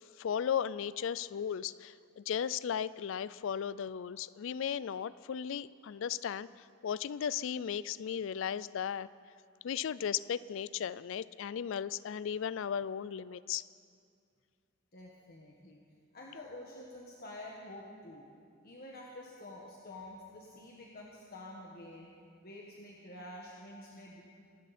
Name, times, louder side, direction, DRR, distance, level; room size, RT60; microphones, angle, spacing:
voice 1, 0.2-9.1 9.6-13.7, left 8 dB, 70° left, 19 dB, 0.4 m, -36 dB
voice 2, 14.9-15.8 16.1-18.3 18.6-22.1 22.4-24.2, left 1 dB, 50° left, -2 dB, 1.5 m, -48 dB
26.0 x 13.0 x 4.3 m, 2.3 s
head